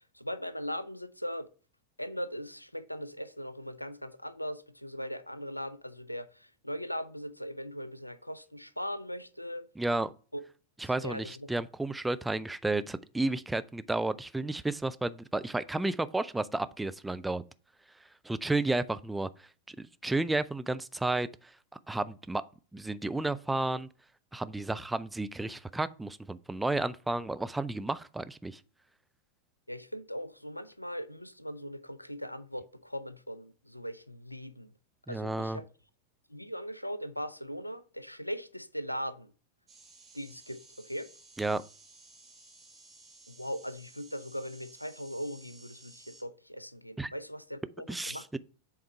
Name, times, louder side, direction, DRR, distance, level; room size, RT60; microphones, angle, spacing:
voice 1, 0.1-1.5 2.0-9.7 10.3-10.4 11.0-11.5 29.7-34.7 35.1-35.7 36.3-39.3 40.1-41.1 43.3-48.2, equal, 90° left, 0.4 m, -39 dB
voice 2, 9.8-10.1 10.8-17.4 18.2-19.3 19.7-19.8 20.0-21.5 21.9-22.4 22.7-23.9 24.3-28.6 35.1-35.6 41.4-41.6 47.0-47.1 47.9-48.4, right 2 dB, 5° right, 0.3 m, -32 dB
sound 1, 39.7-46.2, right 3 dB, 25° right, 1.9 m, -56 dB
7.7 x 3.6 x 4.4 m
figure-of-eight pair, 90°, 0 cm